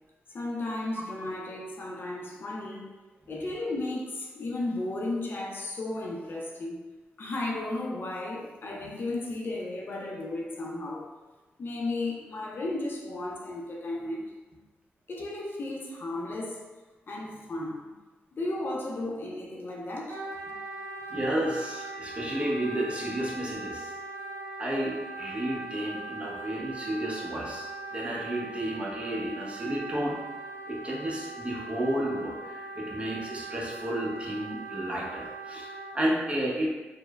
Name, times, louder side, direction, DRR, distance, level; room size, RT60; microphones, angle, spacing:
voice 1, 0.3-2.9 3.3-6.8 7.2-11.1 11.6-14.3 15.1-16.6 17.1-17.9 18.3-20.2 20.5-20.6, left 2 dB, 50° left, -1 dB, 0.5 m, -34 dB
Wind instrument woodwind instrument, 20.1-36.0, right 3 dB, 80° right, 0.4 m, -40 dB
voice 2, 21.1-23.9 24.6-30.2 30.7-36.7, right 1 dB, 25° right, -4 dB, 0.7 m, -32 dB
3.0 x 2.0 x 2.3 m, 1.2 s
cardioid pair, 65°, 4 cm